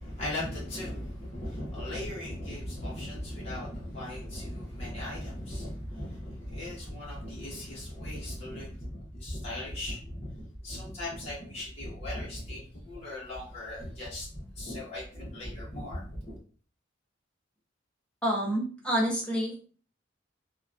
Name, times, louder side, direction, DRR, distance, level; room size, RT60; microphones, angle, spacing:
voice 1, 0.0-16.3, left 1 dB, 30° left, -7 dB, 0.9 m, -38 dB
voice 2, 18.2-19.5, equal, 5° left, -4 dB, 0.7 m, -28 dB
2.8 x 2.2 x 2.4 m, 0.41 s
head